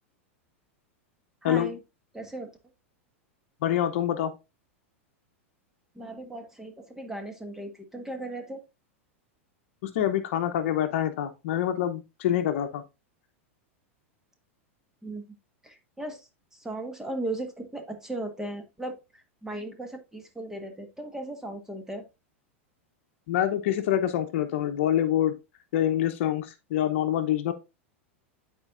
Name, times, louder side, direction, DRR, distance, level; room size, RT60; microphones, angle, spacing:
voice 1, 1.4-1.8 2.1-2.5 5.9-8.6 15.0-15.2 15.6-22.0, right 1 dB, 5° right, 1.4 m, -37 dB
voice 2, 3.6-4.3 9.8-12.8 23.3-25.3 25.7-27.5, left 11 dB, 65° left, 0.8 m, -26 dB
10.5 x 4.5 x 2.5 m
hypercardioid pair, 105°, 7 cm